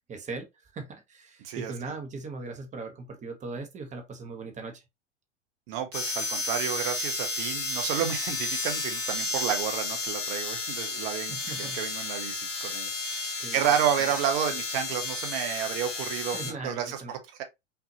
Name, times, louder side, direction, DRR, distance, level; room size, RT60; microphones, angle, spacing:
voice 1, 0.1-0.5 0.7-4.8 11.3-11.8 13.4-13.8 14.0-14.1 16.3-17.2, right 3 dB, 20° right, 1.1 m, -39 dB
voice 2, 1.4-1.7 5.7-16.4 16.6-17.4, right 9 dB, 50° right, 1.1 m, -31 dB
sound 1, 5.9-16.5, left 3 dB, 80° left, 1.6 m, -32 dB
5.7 x 2.8 x 2.8 m
figure-of-eight pair, 90°, 37 cm